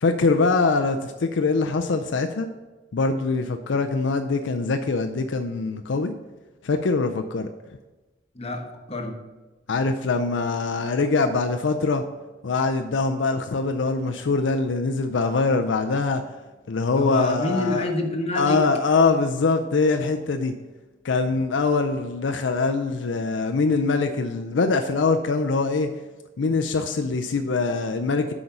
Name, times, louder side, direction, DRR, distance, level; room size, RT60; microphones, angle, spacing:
voice 1, 0.0-2.5 2.9-6.1 6.6-7.5 9.7-12.0 12.4-16.2 16.7-17.9 18.4-20.5 21.0-25.9 26.4-28.3, left 3 dB, 75° left, 6 dB, 0.5 m, -23 dB
voice 2, 8.3-9.2 16.9-18.6, left 2 dB, 35° left, 2 dB, 1.1 m, -27 dB
8.0 x 5.0 x 5.8 m, 1.2 s
head